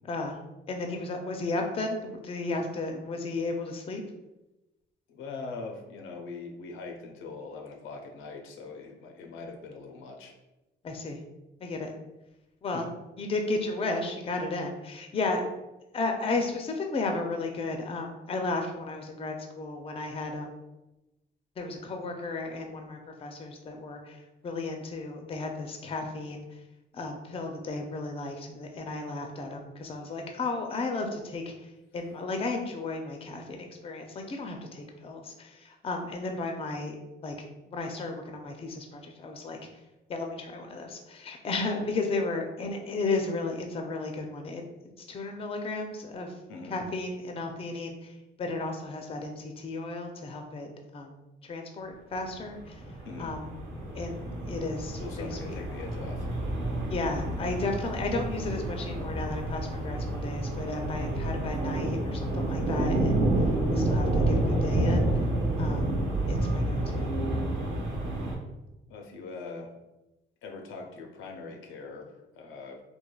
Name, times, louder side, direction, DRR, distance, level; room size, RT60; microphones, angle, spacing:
voice 1, 0.1-0.4 0.7-4.0 10.8-11.2 11.6-11.9 12.6-12.9 13.2-15.5 15.9-20.6 21.6-26.6 26.9-37.0 37.2-39.6 40.1-44.6 45.0-46.3 46.7-48.1 48.4-52.8 53.2-53.5 53.9-55.5 56.9-63.3 63.7-65.1 65.5-66.0 66.3-67.1, left 3 dB, 30° left, 3 dB, 0.4 m, -34 dB
voice 2, 5.1-10.4 12.7-12.8 46.5-46.8 53.0-53.3 55.0-56.3 68.9-69.7 70.4-72.8, left 4 dB, 85° left, 2 dB, 0.5 m, -42 dB
sound 1, 52.5-68.3, right 1 dB, 70° right, 1.0 m, -29 dB
3.1 x 2.1 x 2.2 m, 1.0 s
cardioid pair, 90°, 20 cm